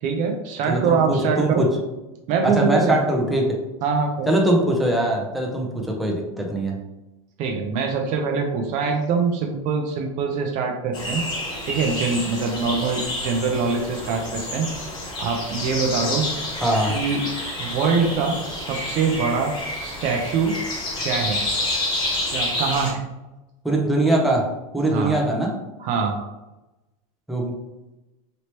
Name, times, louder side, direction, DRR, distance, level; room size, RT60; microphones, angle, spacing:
voice 1, 0.0-1.6 2.3-3.0 3.8-4.3 7.4-11.2 11.7-14.7 15.2-16.3 16.9-17.2 17.6-19.5 19.8-20.6 21.0-21.4 22.3-23.0 24.9-25.2 25.8-26.3, right 5 dB, 45° right, 3 dB, 0.5 m, -23 dB
voice 2, 0.7-1.7 2.4-3.6 4.3-6.8 16.6-17.0 23.6-24.5 24.7-25.5 27.3-27.5, right 1 dB, ahead, -1 dB, 0.6 m, -21 dB
sound 1, 10.9-22.9, left 1 dB, 25° left, 1.0 m, -29 dB
3.1 x 2.9 x 2.9 m, 1.0 s
supercardioid pair, 120°, 18 cm